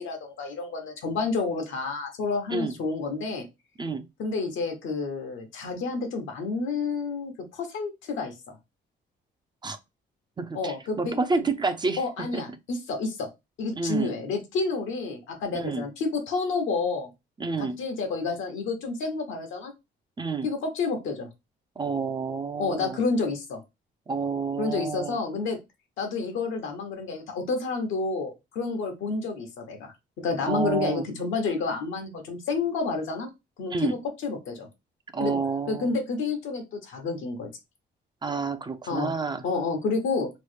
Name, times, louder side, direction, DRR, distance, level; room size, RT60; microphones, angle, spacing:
voice 1, 0.0-3.5 4.2-8.6 10.5-11.4 12.0-13.3 13.6-17.1 17.6-19.7 20.4-21.3 22.6-23.6 24.6-25.6 26.0-33.3 33.6-34.7 35.2-35.4 35.7-37.5 38.9-39.1 39.4-40.3, left 4 dB, 80° left, 1.0 m, -29 dB
voice 2, 10.4-12.4 13.7-14.1 15.5-15.9 17.4-17.8 20.2-20.5 21.8-23.0 24.1-25.2 30.5-31.0 33.7-33.9 35.1-35.9 38.2-39.4, right 4 dB, 20° right, 0.4 m, -29 dB
3.1 x 2.1 x 3.2 m
cardioid pair, 90°, 20 cm